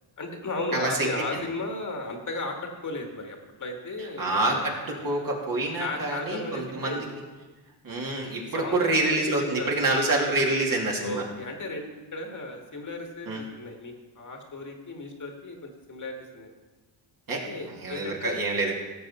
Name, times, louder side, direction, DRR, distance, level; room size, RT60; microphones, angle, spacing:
voice 1, 0.2-4.6 5.0-5.3 5.8-7.2 8.4-9.8 11.0-16.5 17.3-18.4, left 2 dB, 40° left, 2 dB, 1.9 m, -35 dB
voice 2, 0.7-1.1 4.2-7.0 7.8-11.2 13.3-13.4 17.3-18.7, right 2 dB, 50° right, -2 dB, 2.8 m, -27 dB
16.5 x 7.0 x 4.3 m, 1.2 s
cardioid pair, 95°, 45 cm